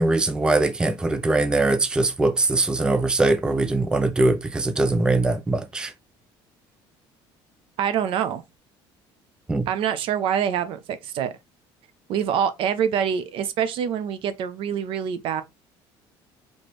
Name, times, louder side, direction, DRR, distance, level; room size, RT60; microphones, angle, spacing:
voice 1, 0.0-5.9 9.5-9.7, right 2 dB, 10° right, 0.5 m, -21 dB
voice 2, 7.8-8.4 9.7-11.3 12.1-15.4, right 8 dB, 60° right, 0.7 m, -25 dB
4.2 x 3.1 x 3.1 m
cardioid pair, 135°, 10 cm